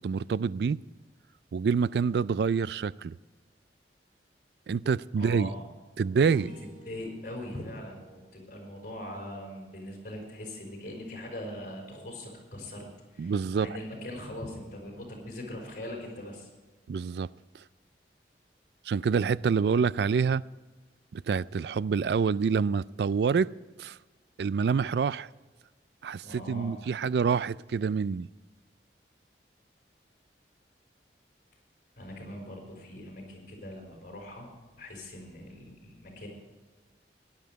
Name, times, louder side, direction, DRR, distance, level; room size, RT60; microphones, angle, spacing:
voice 1, 0.0-0.8 1.5-3.2 4.7-5.5 6.0-6.5 13.2-13.8 16.9-17.3 18.9-20.4 21.1-23.5 23.8-24.0 24.4-25.3 26.0-28.3, right 5 dB, 65° right, 0.3 m, -27 dB
voice 2, 5.2-5.6 6.6-12.9 13.1-16.5 26.2-26.7 32.0-34.5 34.8-36.3, left 1 dB, 50° left, 5.2 m, -41 dB
sound 1, 6.2-10.7, right 1 dB, 40° right, 3.4 m, -52 dB
17.0 x 11.5 x 4.7 m
head